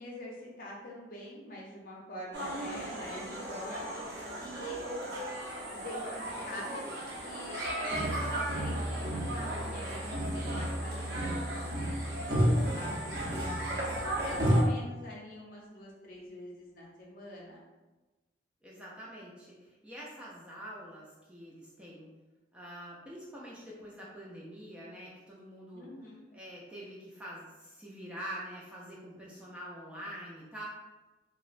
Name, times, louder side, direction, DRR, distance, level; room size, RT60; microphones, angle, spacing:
voice 1, 0.0-3.8 4.4-4.8 5.7-6.8 7.2-11.3 11.9-17.6 25.7-26.2, left 1 dB, 50° left, -3 dB, 0.6 m, -45 dB
sound 1, 2.3-14.6, equal, 70° right, 0.6 m, -33 dB
voice 2, 18.6-22.1 22.5-25.9 26.3-30.6, equal, 5° right, -6 dB, 0.3 m, -45 dB
2.8 x 2.0 x 2.4 m, 1.1 s
head